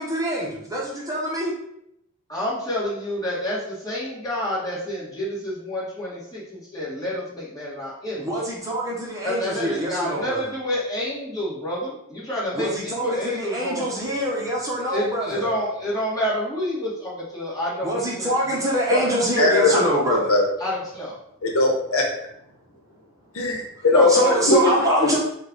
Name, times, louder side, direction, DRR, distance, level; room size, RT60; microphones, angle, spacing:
voice 1, 0.0-1.5 8.2-10.4 12.5-15.4 17.8-20.3 24.1-25.2, equal, 15° right, -4 dB, 0.8 m, -25 dB
voice 2, 2.3-8.3 9.2-13.9 14.9-18.3 18.9-19.1 19.7-19.8 20.6-21.1 23.9-24.7, left 1 dB, 15° left, -7 dB, 1.5 m, -28 dB
voice 3, 19.4-19.8 20.3-20.4 21.4-22.0 23.3-25.2, left 2 dB, 85° left, 1 dB, 0.9 m, -20 dB
5.3 x 2.3 x 3.9 m, 0.76 s
head